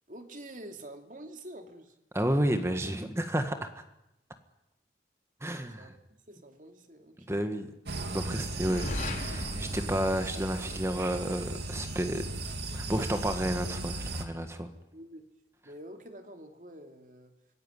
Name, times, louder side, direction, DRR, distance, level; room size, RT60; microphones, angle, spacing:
voice 1, 0.1-1.9 5.8-5.9 6.3-7.6 14.9-15.3 15.6-17.3, right 1 dB, 45° right, 5 dB, 2.6 m, -47 dB
voice 2, 2.1-3.8 5.4-5.9 7.3-7.7 8.1-8.9 9.2-12.2 12.7-14.7, right 1 dB, 15° right, 7 dB, 1.6 m, -31 dB
sound 1, 7.9-14.3, right 2 dB, 75° right, 2.7 m, -37 dB
sound 2, 8.5-11.3, left 1 dB, 45° left, 4.0 m, -37 dB
26.0 x 16.5 x 9.9 m, 0.89 s
head